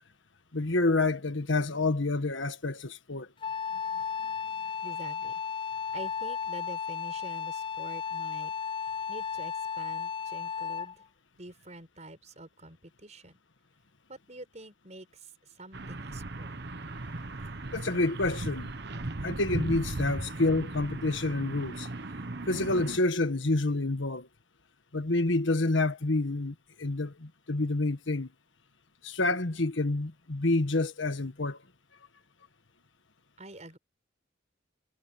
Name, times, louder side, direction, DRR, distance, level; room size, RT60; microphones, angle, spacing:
voice 1, 0.5-3.3 17.7-18.7 19.2-21.9 22.5-24.3 24.9-28.3 29.0-31.6, left 2 dB, 80° left, 1.5 m, -28 dB
Wind instrument woodwind instrument, 3.4-11.0, left 7 dB, 25° left, 0.4 m, -34 dB
voice 2, 4.8-5.4 5.9-8.5 8.8-11.0 11.4-13.3 14.1-16.5 33.4-33.8, right 1 dB, 35° right, 5.8 m, -47 dB
sound 1, 15.7-23.0, right 2 dB, 60° right, 1.3 m, -37 dB
head